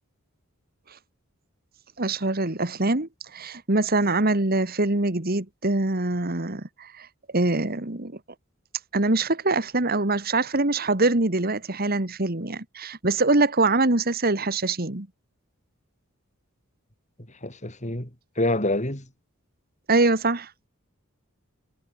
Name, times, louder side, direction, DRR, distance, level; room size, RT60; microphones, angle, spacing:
voice 1, 2.0-7.1 7.3-8.2 8.9-15.1 19.9-20.5, right 2 dB, 45° right, 2.0 m, -24 dB
voice 2, 17.4-18.1 18.4-19.1, left 1 dB, 35° left, 6.4 m, -26 dB
head